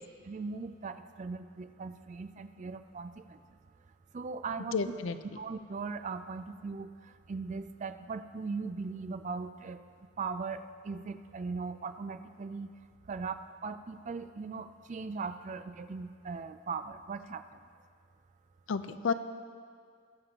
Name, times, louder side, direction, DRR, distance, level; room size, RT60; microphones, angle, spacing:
voice 1, 0.2-3.4 4.1-4.8 5.3-9.8 10.2-12.7 13.1-17.4, right 4 dB, 35° right, 10 dB, 0.4 m, -39 dB
voice 2, 4.7-5.2 18.7-19.1, left 5 dB, 65° left, 11 dB, 0.5 m, -31 dB
20.0 x 6.9 x 2.9 m, 2.1 s
head